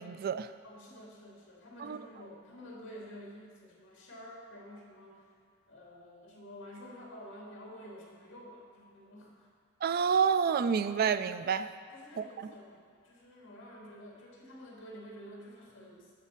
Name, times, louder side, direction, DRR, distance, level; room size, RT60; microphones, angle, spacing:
voice 1, 0.0-0.5 1.8-2.0 9.8-11.7 12.2-12.3, right 6 dB, 45° right, 12 dB, 0.3 m, -28 dB
voice 2, 0.6-5.3 5.7-9.5 11.9-16.1, equal, 65° left, -3 dB, 2.3 m, -50 dB
12.0 x 4.1 x 6.6 m, 2.2 s
head